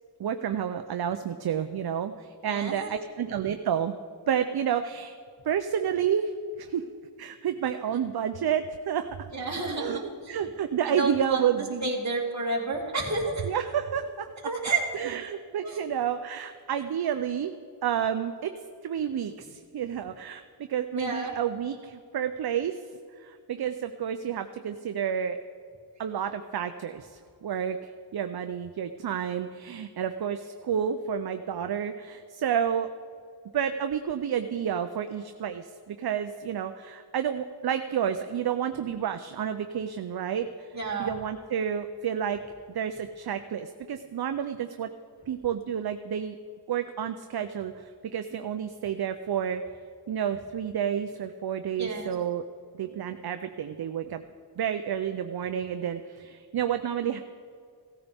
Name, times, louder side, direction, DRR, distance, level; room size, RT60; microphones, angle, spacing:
voice 1, 0.2-4.0 4.3-5.2 5.4-6.3 6.6-6.8 7.2-9.3 9.8-11.9 13.4-14.3 14.9-17.5 17.8-18.5 18.8-20.4 20.7-22.7 23.2-25.4 26.0-32.9 33.5-40.5 41.0-42.4 42.7-44.9 45.3-46.4 46.7-49.6 50.1-52.4 52.8-54.2 54.6-57.2, right 8 dB, 55° right, 8 dB, 0.6 m, -30 dB
voice 2, 2.4-3.0 7.9-8.0 9.3-10.0 10.9-11.5 11.8-13.5 14.4-14.9 15.6-15.9 20.9-21.4 40.7-41.1 51.8-52.1, right 3 dB, 35° right, -2 dB, 2.5 m, -30 dB
16.5 x 14.0 x 3.5 m, 2.3 s
wide cardioid pair, 85°, 45 cm